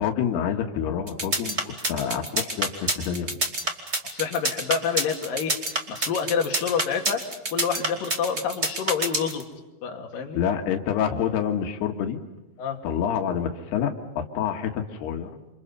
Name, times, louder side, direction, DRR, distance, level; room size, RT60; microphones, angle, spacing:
voice 1, 0.0-3.4 10.4-12.2 12.8-15.3, left 8 dB, 90° left, 4 dB, 3.6 m, -27 dB
sound 1, 1.1-9.4, right 2 dB, 20° right, 2.4 m, -26 dB
voice 2, 4.1-5.6 5.9-7.2 7.5-9.5 9.8-10.4 12.6-12.8, left 7 dB, 60° left, 2 dB, 3.8 m, -27 dB
28.5 x 27.5 x 5.6 m, 1.0 s
omnidirectional pair, 4.5 m